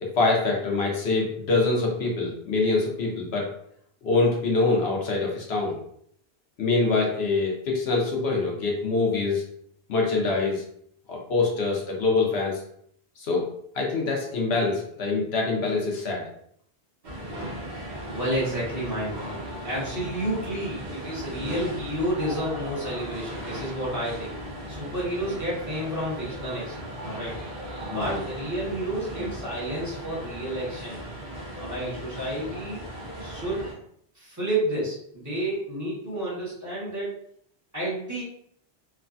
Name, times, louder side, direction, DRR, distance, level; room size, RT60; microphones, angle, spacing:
voice 1, 0.0-3.5 4.0-5.8 6.6-9.4 9.9-10.6 11.1-12.6 13.2-13.5 13.7-16.2 27.9-28.2, left 3 dB, 80° left, -1 dB, 1.0 m, -25 dB
sound 1, 17.0-33.7, right 1 dB, 50° right, 0.7 m, -37 dB
voice 2, 18.1-24.3 24.7-27.4 27.9-31.0 31.5-32.8 33.2-33.7 34.1-37.1 37.7-38.2, right 1 dB, 15° right, -9 dB, 1.2 m, -30 dB
3.1 x 2.2 x 2.5 m, 0.67 s
omnidirectional pair, 1.1 m